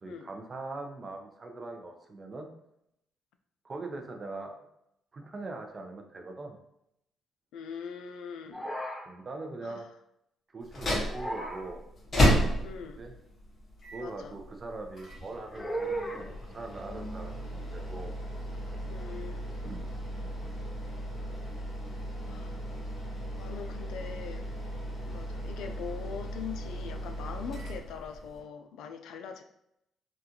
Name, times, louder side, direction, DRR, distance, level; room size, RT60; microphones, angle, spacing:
voice 1, 0.0-2.5 3.6-4.6 5.1-6.6 9.1-9.8 10.5-11.8 13.0-13.1 13.9-18.1 19.6-19.9 20.2-20.5, right 2 dB, 35° right, 4 dB, 0.6 m, -41 dB
voice 2, 7.5-8.7 9.6-10.0 12.6-13.0 14.0-14.4 18.9-19.5 22.3-22.6 23.4-24.5 25.0-29.4, left 6 dB, 85° left, 7 dB, 0.3 m, -42 dB
sound 1, 8.5-9.0 11.0-11.6 15.5-16.2, right 1 dB, 5° left, 0.9 m, -35 dB
sound 2, 10.6-28.4, equal, 40° left, 1.3 m, -34 dB
3.7 x 2.4 x 2.8 m, 0.79 s
cardioid pair, 90°, 0 cm